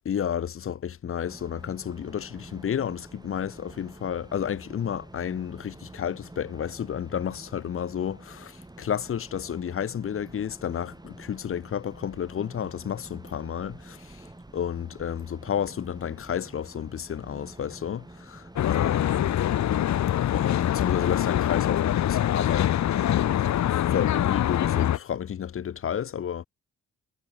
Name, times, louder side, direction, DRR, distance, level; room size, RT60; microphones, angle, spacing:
voice 1, 0.0-19.3 20.3-26.5, left 9 dB, 50° left, 0.8 m, -31 dB
sound 1, 1.3-19.3, right 2 dB, 15° right, 4.2 m, -48 dB
Traffic noise roadway noise, 18.6-25.0, left 11 dB, 70° left, 1.1 m, -24 dB
cardioid pair, 75°, 29 cm